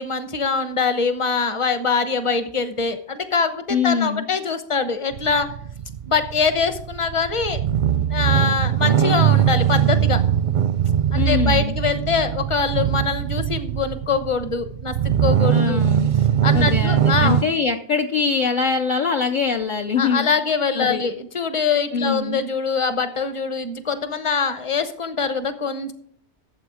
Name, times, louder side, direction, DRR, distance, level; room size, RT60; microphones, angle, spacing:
voice 1, 0.0-5.5 6.1-7.6 8.1-10.2 11.1-15.8 16.4-17.4 20.0-25.9, left 5 dB, 30° left, 10 dB, 1.0 m, -23 dB
voice 2, 3.7-4.3 11.1-11.7 15.5-16.1 16.5-20.3 20.8-21.0 21.9-22.4, left 5 dB, 50° left, 3 dB, 0.8 m, -23 dB
sound 1, 5.1-17.4, right 9 dB, 55° right, 0.5 m, -21 dB
13.0 x 7.6 x 4.9 m, 0.64 s
omnidirectional pair, 1.1 m